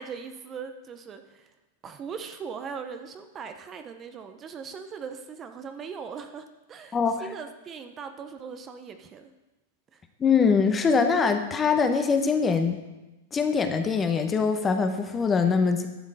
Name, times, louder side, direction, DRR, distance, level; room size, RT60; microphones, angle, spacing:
voice 1, 0.0-1.5 1.8-9.3 9.9-10.0, right 6 dB, 25° right, 8 dB, 0.7 m, -40 dB
voice 2, 6.9-7.3 10.2-12.8 13.3-15.9, left 5 dB, 20° left, 7 dB, 0.9 m, -23 dB
11.5 x 6.5 x 4.9 m, 1.0 s
hypercardioid pair, 125°, 0 cm